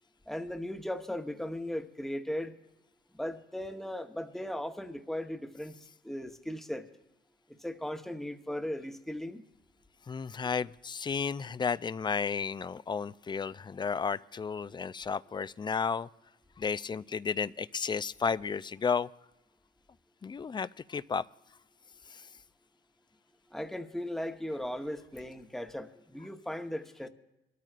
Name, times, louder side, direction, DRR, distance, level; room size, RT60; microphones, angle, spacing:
voice 1, 0.3-2.5 3.1-5.8 6.0-6.9 7.6-9.4 23.5-27.1, left 1 dB, ahead, 7 dB, 1.0 m, -37 dB
voice 2, 10.1-16.1 16.6-19.1 20.2-21.3 22.1-22.3, left 6 dB, 25° left, 16 dB, 0.3 m, -33 dB
22.5 x 13.5 x 2.5 m, 0.97 s
cardioid pair, 90°, 20 cm